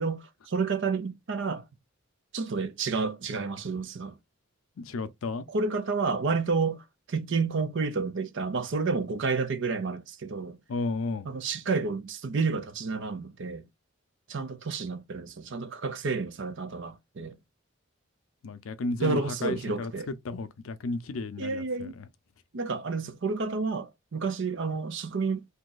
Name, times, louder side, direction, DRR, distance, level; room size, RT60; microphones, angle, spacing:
voice 1, 0.0-1.6 2.3-4.2 5.5-10.6 11.3-13.6 14.3-17.4 19.0-20.1 21.4-22.0 22.5-25.4, right 4 dB, 65° right, 0.6 m, -30 dB
voice 2, 4.8-5.5 10.7-11.3 18.4-22.1, left 3 dB, 75° left, 0.5 m, -33 dB
2.7 x 2.4 x 3.8 m
head